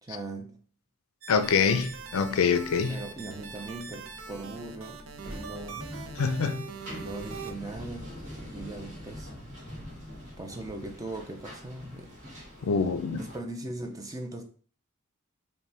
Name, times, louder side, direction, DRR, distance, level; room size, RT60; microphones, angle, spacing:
voice 1, 0.0-0.6 2.9-5.9 7.0-9.3 10.4-12.1 13.2-14.4, right 2 dB, 15° right, 0.4 m, -39 dB
sound 1, 1.2-7.5, right 6 dB, 70° right, 0.6 m, -43 dB
voice 2, 1.3-3.0 6.2-6.7 12.6-13.2, left 5 dB, 75° left, 0.4 m, -25 dB
sound 2, 1.4-13.4, equal, 35° right, 1.8 m, -45 dB
5.1 x 2.2 x 3.3 m
head